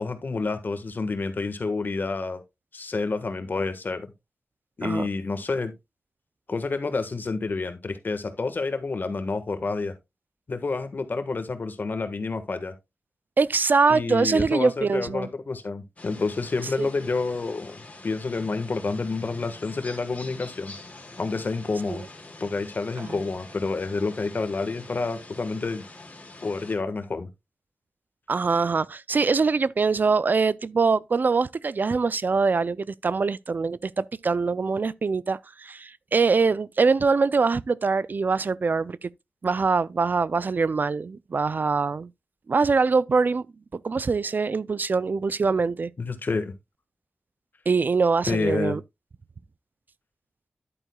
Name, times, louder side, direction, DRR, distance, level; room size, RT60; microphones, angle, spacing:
voice 1, 0.0-2.4 2.7-4.1 4.8-5.7 6.5-10.0 10.5-12.7 13.9-20.7 21.2-22.0 22.4-25.8 26.4-27.3 46.0-46.5 48.3-48.8, left 3 dB, 50° left, 1.4 m, -29 dB
voice 2, 13.4-15.3 16.8-16.9 21.9-22.0 23.0-23.1 28.3-39.1 39.4-42.1 42.5-43.5 43.8-45.9 47.7-48.8, right 4 dB, 50° right, 0.4 m, -23 dB
sound 1, 16.0-26.8, left 2 dB, 35° left, 3.2 m, -45 dB
11.0 x 8.6 x 2.3 m
wide cardioid pair, 105°, 4 cm